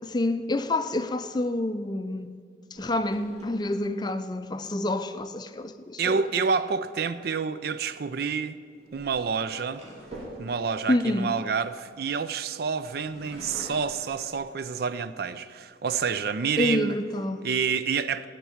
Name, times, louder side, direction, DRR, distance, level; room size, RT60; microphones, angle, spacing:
voice 1, 0.0-2.3 2.7-6.3 10.9-11.3 16.6-17.4, left 1 dB, 25° left, 0.4 m, -28 dB
sound 1, 2.7-4.3 7.3-7.6 8.6-12.3 12.8-15.0 15.5-15.6 15.9-16.5, right 1 dB, 35° right, 3.2 m, -46 dB
voice 2, 6.0-8.6 8.9-9.8 10.4-17.0 17.4-18.3, right 6 dB, 55° right, 0.4 m, -28 dB
13.5 x 4.6 x 8.6 m
head